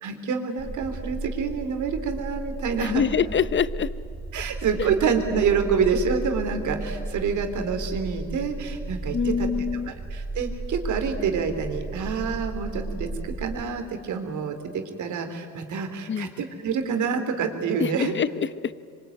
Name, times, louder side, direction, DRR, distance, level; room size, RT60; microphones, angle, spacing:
voice 1, 0.0-3.0 4.3-9.5 10.1-18.1, right 6 dB, 75° right, 6 dB, 3.6 m, -27 dB
sound 1, 0.6-13.6, right 2 dB, 15° right, 5.2 m, -34 dB
voice 2, 2.8-3.9 9.1-9.9 16.1-16.3 17.8-18.5, left 7 dB, 40° left, 16 dB, 0.9 m, -25 dB
26.0 x 24.0 x 9.4 m, 2.3 s
cardioid pair, 90°, 30 cm